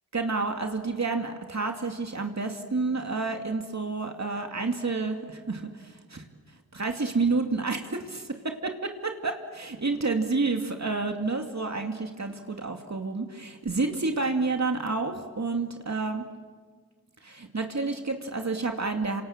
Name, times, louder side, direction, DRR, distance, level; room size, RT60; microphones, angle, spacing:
voice 1, 0.1-6.2 6.7-16.2 17.2-19.2, right 3 dB, 45° right, 4 dB, 2.5 m, -29 dB
27.0 x 26.5 x 7.5 m, 1.5 s
cardioid pair, 45°, 37 cm